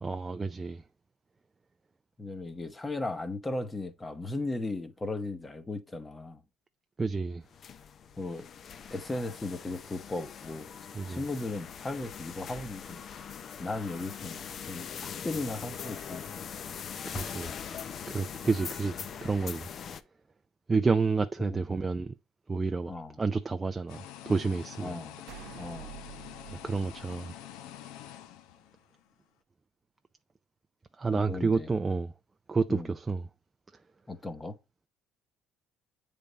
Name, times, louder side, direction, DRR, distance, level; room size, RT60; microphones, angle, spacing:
voice 1, 0.0-0.8 7.0-7.4 10.9-11.2 17.0-17.6 18.1-19.7 20.7-22.1 22.5-22.9 23.2-25.0 26.5-27.4 31.0-32.1 32.5-33.3, right 4 dB, 20° right, 0.4 m, -30 dB
voice 2, 2.2-6.4 8.2-8.5 8.9-10.7 11.1-13.0 13.6-16.2 21.4-21.6 22.9-23.2 24.8-25.2 25.6-25.9 31.1-31.7 32.7-32.9 34.1-34.6, left 2 dB, 15° left, 0.9 m, -36 dB
sound 1, 7.5-20.0, left 7 dB, 45° left, 0.5 m, -42 dB
sound 2, 23.9-29.1, left 11 dB, 85° left, 0.6 m, -46 dB
sound 3, 25.3-27.8, right 12 dB, 80° right, 0.8 m, -49 dB
8.4 x 3.4 x 3.9 m
cardioid pair, 120°, 0 cm